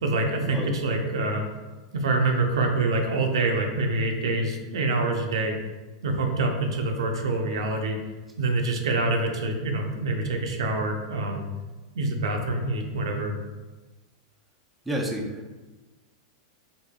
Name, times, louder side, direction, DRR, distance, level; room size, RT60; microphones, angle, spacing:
voice 1, 0.0-1.4 1.9-5.6 6.0-8.0 8.4-11.4 12.0-13.3, right 2 dB, 75° right, 2 dB, 0.5 m, -26 dB
voice 2, 14.8-15.6, right 1 dB, 5° right, -2 dB, 0.6 m, -30 dB
4.6 x 2.6 x 2.2 m, 1.2 s
hypercardioid pair, 105°, 3 cm